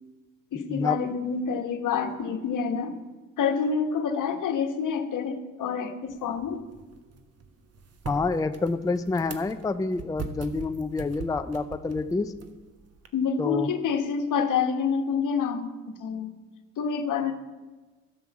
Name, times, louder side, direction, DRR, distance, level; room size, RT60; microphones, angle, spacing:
voice 1, 0.5-2.9 3.4-6.6 13.1-16.3 16.8-17.3, left 6 dB, 70° left, 7 dB, 1.2 m, -27 dB
sound 1, 6.1-13.1, right 4 dB, 50° right, 1.2 m, -42 dB
voice 2, 8.1-12.3 13.4-13.7, left 3 dB, 10° left, 9 dB, 0.4 m, -28 dB
12.0 x 6.4 x 7.2 m, 1.3 s
cardioid pair, 90°, 32 cm